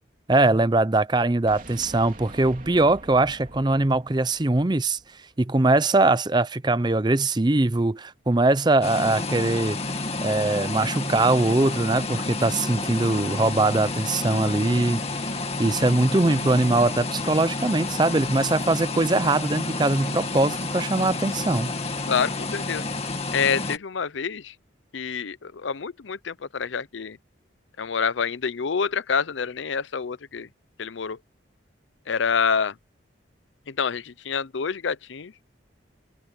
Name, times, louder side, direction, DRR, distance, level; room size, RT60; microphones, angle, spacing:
voice 1, 0.3-5.0 5.4-9.8 10.2-15.0 15.6-21.7, right 2 dB, 20° right, 0.6 m, -22 dB
sound 1, 1.5-5.4, right 1 dB, 45° right, 3.4 m, -45 dB
sound 2, 8.8-23.8, left 2 dB, 30° left, 2.2 m, -30 dB
voice 2, 22.1-22.8 23.3-24.5 24.9-27.2 27.8-30.5 30.8-31.2 32.1-32.8 33.7-35.3, left 6 dB, 80° left, 0.6 m, -27 dB
head